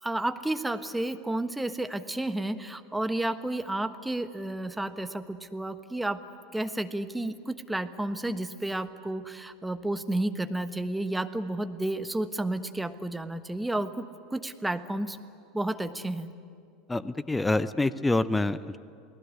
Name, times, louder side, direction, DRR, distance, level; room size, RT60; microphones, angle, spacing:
voice 1, 0.0-6.2 6.5-15.2 15.5-16.3, right 1 dB, 5° right, 9 dB, 1.3 m, -31 dB
voice 2, 16.9-18.8, left 2 dB, 10° left, 16 dB, 0.7 m, -26 dB
28.5 x 19.5 x 8.4 m, 2.4 s
figure-of-eight pair, 75°, 0 cm